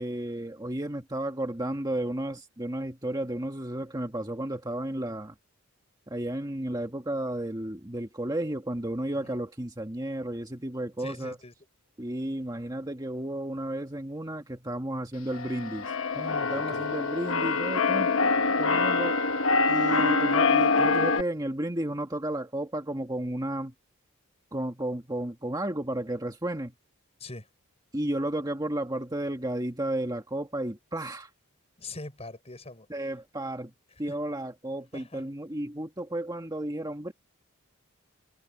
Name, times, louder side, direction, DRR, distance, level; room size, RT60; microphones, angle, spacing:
voice 1, 0.0-5.3 6.1-11.4 12.0-18.1 18.6-19.2 19.7-23.7 24.5-26.7 27.9-31.3 32.9-33.7 34.0-37.1, right 1 dB, 20° right, 1.8 m, -33 dB
voice 2, 11.0-11.5 16.5-16.9 27.2-27.5 31.8-33.0 34.0-34.2 34.9-35.3, left 2 dB, 30° left, 5.4 m, -43 dB
Keyboard (musical), 15.3-21.2, left 4 dB, 65° left, 1.2 m, -25 dB
head